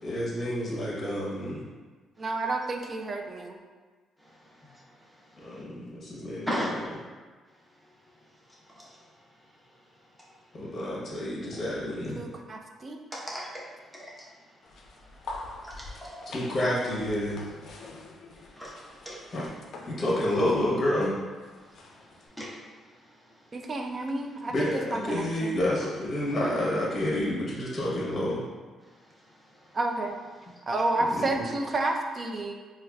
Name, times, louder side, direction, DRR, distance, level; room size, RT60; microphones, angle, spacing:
voice 1, 0.0-1.6 5.4-6.5 10.5-12.2 16.3-17.4 19.3-19.5 19.9-21.1 24.5-28.4 31.1-31.3, left 1 dB, 35° left, -5 dB, 0.8 m, -29 dB
voice 2, 2.2-3.6 12.2-13.0 16.6-16.8 23.5-25.6 29.7-30.2 30.7-32.6, right 2 dB, 40° right, 3 dB, 0.4 m, -30 dB
voice 3, 6.5-6.9 8.7-9.0 13.1-13.7 13.9-14.2 15.6-16.3 18.5-19.4 22.4-22.6, equal, ahead, -7 dB, 0.8 m, -36 dB
sound 1, 14.6-22.3, left 2 dB, 65° left, 0.4 m, -45 dB
4.5 x 2.3 x 2.2 m, 1.4 s
cardioid pair, 90°, 0 cm